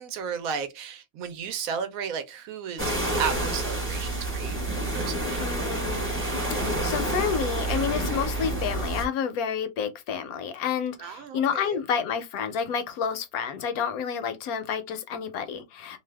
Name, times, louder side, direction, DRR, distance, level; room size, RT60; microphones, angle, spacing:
voice 1, 0.0-2.9 3.2-4.6 4.9-5.3 11.0-11.8, right 7 dB, 70° right, 1.0 m, -33 dB
sound 1, 2.8-9.1, right 1 dB, 10° right, 0.9 m, -28 dB
voice 2, 5.4-6.2 6.8-16.0, left 7 dB, 75° left, 1.0 m, -29 dB
2.6 x 2.3 x 3.2 m
omnidirectional pair, 1.6 m